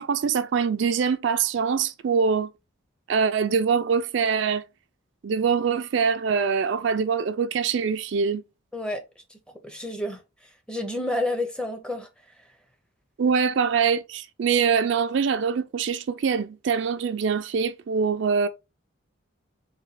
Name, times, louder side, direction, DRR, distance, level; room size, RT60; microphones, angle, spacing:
voice 1, 0.0-2.5 3.1-4.6 5.2-8.4 13.2-18.5, right 6 dB, 60° right, 0.3 m, -24 dB
voice 2, 8.7-9.4 9.6-10.2 10.7-12.1, left 1 dB, 5° left, 0.5 m, -30 dB
3.9 x 2.2 x 4.0 m
head